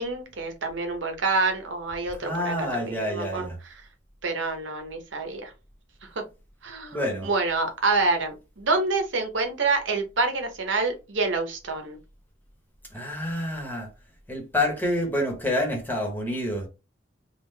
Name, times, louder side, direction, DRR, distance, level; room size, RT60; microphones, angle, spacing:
voice 1, 0.0-3.7 4.2-5.5 6.6-12.0, right 3 dB, 80° right, 1.0 m, -27 dB
voice 2, 2.2-3.6 6.9-7.3 12.9-13.9 14.3-16.7, left 1 dB, 10° left, 1.2 m, -28 dB
3.7 x 2.4 x 3.3 m
head